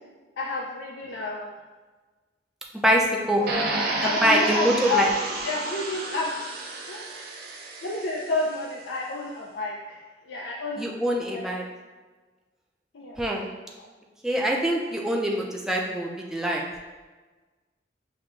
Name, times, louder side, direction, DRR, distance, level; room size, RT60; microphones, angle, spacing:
voice 1, 0.4-1.5 3.4-5.1 5.4-6.4 6.9-7.2 7.8-10.0 10.2-11.5 12.9-13.2 13.8-13.9, left 3 dB, 85° left, -2 dB, 0.5 m, -30 dB
voice 2, 2.7-3.4 4.0-5.1 10.8-11.6 13.2-13.5 14.2-16.6, equal, 5° right, -2 dB, 0.5 m, -24 dB
sound 1, 3.5-8.5, right 2 dB, 55° right, 0.6 m, -31 dB
6.1 x 2.2 x 3.7 m, 1.3 s
head